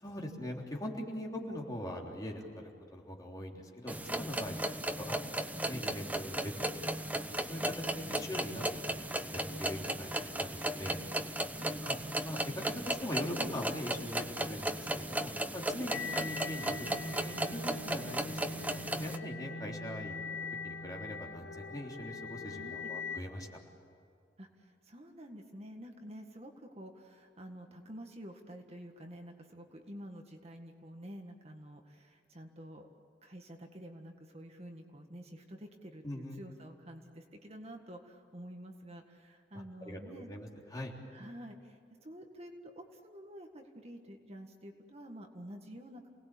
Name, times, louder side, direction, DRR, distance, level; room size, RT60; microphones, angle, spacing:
voice 1, 0.0-2.5 2.9-4.5 5.0-6.7 7.0-7.1 7.5-7.6 7.9-11.0 11.2-11.4 11.8-20.2 20.6-23.5 36.0-36.4 39.8-40.9, left 1 dB, 20° left, -1 dB, 3.5 m, -42 dB
sound 1, 3.9-19.2, right 1 dB, 10° right, 0.9 m, -36 dB
voice 2, 4.4-4.7 7.6-8.2 11.5-11.8 15.8-16.3 22.4-23.0 24.4-32.9 33.2-40.3 41.1-46.1, equal, 35° right, 4 dB, 1.8 m, -49 dB
sound 2, 15.9-23.2, left 4 dB, 65° left, 1.8 m, -42 dB
28.5 x 19.5 x 8.5 m, 2.4 s
head